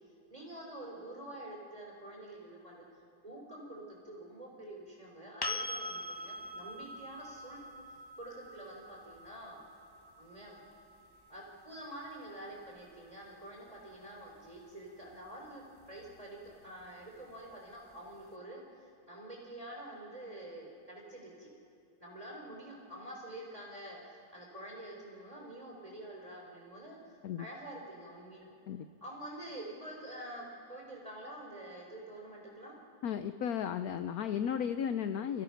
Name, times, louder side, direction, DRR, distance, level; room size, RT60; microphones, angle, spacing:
voice 1, 0.3-7.6 8.2-9.6 10.2-10.6 11.3-21.5 22.0-28.5 29.0-32.7, right 1 dB, 15° right, -2 dB, 4.2 m, -47 dB
sound 1, 5.4-13.2 16.0-16.1, left 1 dB, 20° left, 0.6 m, -44 dB
voice 2, 33.0-35.4, left 8 dB, 65° left, 10 dB, 1.0 m, -34 dB
30.0 x 16.5 x 5.9 m, 2.8 s
omnidirectional pair, 2.1 m